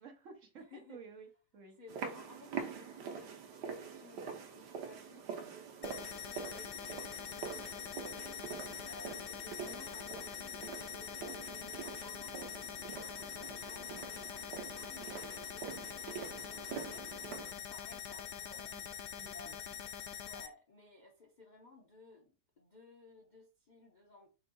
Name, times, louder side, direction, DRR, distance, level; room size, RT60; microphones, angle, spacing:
voice 1, 0.0-0.6 0.9-1.8 18.5-18.9 19.1-19.6, right 5 dB, 55° right, 1.2 m, -53 dB
voice 2, 0.6-1.0 1.8-18.8 19.3-19.6 20.2-24.3, left 3 dB, 45° left, 0.6 m, -58 dB
sound 1, 1.9-17.5, right 6 dB, 85° right, 1.4 m, -45 dB
sound 2, 5.8-20.5, left 9 dB, 80° left, 1.2 m, -44 dB
5.5 x 4.0 x 2.2 m
omnidirectional pair, 1.7 m